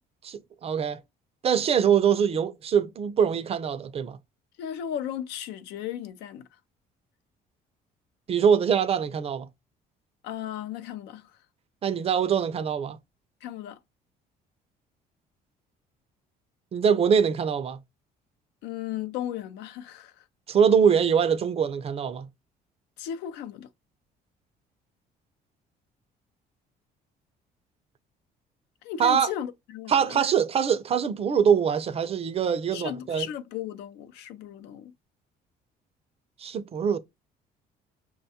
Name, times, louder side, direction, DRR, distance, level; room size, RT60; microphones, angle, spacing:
voice 1, 0.2-1.0 1.4-4.2 8.3-9.5 11.8-13.0 16.7-17.8 20.5-22.3 29.0-29.3 29.9-33.3 36.4-37.0, right 7 dB, 35° right, 0.4 m, -23 dB
voice 2, 4.6-6.5 10.2-11.3 13.4-13.8 18.6-20.2 23.0-23.7 28.8-30.3 32.7-34.9, left 10 dB, 90° left, 0.5 m, -35 dB
5.5 x 2.2 x 2.7 m
cardioid pair, 110°, 17 cm